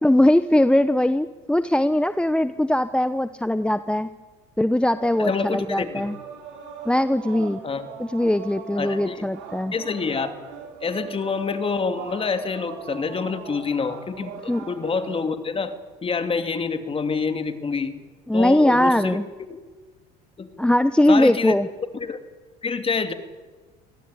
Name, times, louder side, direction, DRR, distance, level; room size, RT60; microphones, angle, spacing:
voice 1, 0.0-4.1 4.6-6.2 6.8-7.6 8.0-9.7 14.5-14.6 18.3-19.3 20.6-21.7, left 1 dB, 5° left, 12 dB, 0.8 m, -20 dB
sound 1, 4.9-15.3, right 7 dB, 70° right, 7.1 m, -40 dB
voice 2, 5.2-6.1 7.6-7.9 8.7-9.2 9.7-10.3 10.8-15.7 16.0-17.9 18.3-19.2 19.5-19.6 20.4-20.5 21.1-21.5 21.9-22.2 22.6-23.1, left 5 dB, 30° left, 8 dB, 2.7 m, -27 dB
26.0 x 18.5 x 10.0 m, 1.4 s
supercardioid pair, 95°, 20 cm